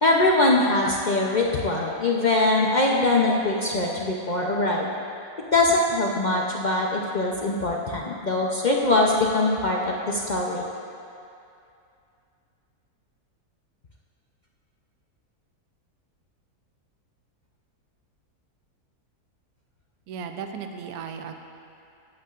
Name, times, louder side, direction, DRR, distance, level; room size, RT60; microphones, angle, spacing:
voice 1, 0.0-4.9 5.5-10.6, left 2 dB, 60° left, -2 dB, 0.4 m, -22 dB
voice 2, 20.1-21.4, right 6 dB, 70° right, 6 dB, 1.1 m, -35 dB
16.5 x 8.4 x 2.5 m, 2.6 s
omnidirectional pair, 1.7 m